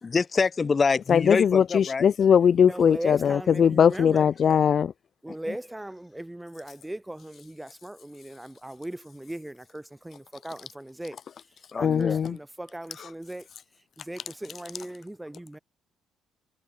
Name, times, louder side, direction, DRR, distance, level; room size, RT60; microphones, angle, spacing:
voice 1, 0.0-2.1 5.3-5.6 11.7-12.2, left 4 dB, 35° left, 3.3 m, -26 dB
voice 2, 1.1-4.9 11.8-12.4 13.0-13.1, left 7 dB, 55° left, 0.7 m, -20 dB
voice 3, 2.6-4.3 5.2-11.2 11.8-13.5 14.0-15.6, right 1 dB, 10° right, 2.6 m, -38 dB
cardioid pair, 90°, 0 cm